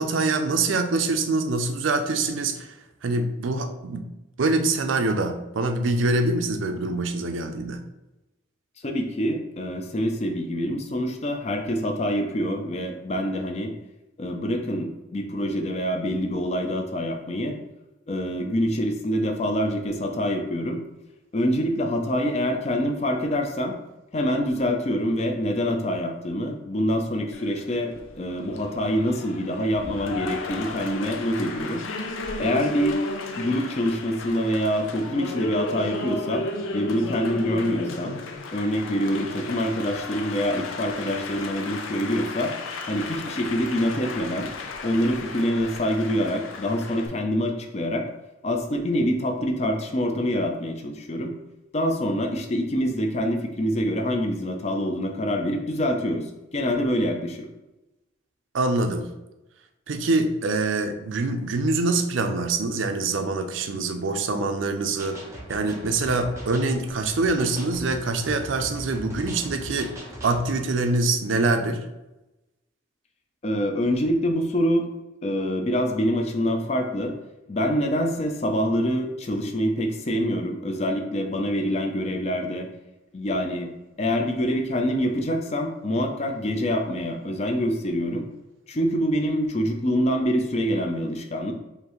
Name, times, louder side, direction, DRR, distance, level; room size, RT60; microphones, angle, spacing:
voice 1, 0.0-2.7 3.0-4.1 4.4-7.8 58.5-59.1 59.9-65.2 65.5-69.9 70.2-71.8, right 3 dB, 80° right, 6 dB, 0.5 m, -24 dB
voice 2, 8.8-13.7 14.2-17.6 18.1-20.8 21.3-23.7 24.1-31.8 32.4-33.0 33.4-36.5 36.7-38.1 38.5-42.5 42.9-44.5 44.8-48.1 48.4-51.3 51.7-56.3 56.5-57.5 73.4-74.9 75.2-77.1 77.5-82.7 83.1-83.7 84.0-88.3 88.7-91.5, equal, 35° left, 4 dB, 0.5 m, -25 dB
Applause, 27.3-47.1, left 3 dB, 90° left, 0.5 m, -34 dB
sound 1, 65.0-70.5, right 1 dB, 15° right, 0.6 m, -40 dB
5.0 x 2.7 x 3.0 m, 0.98 s
head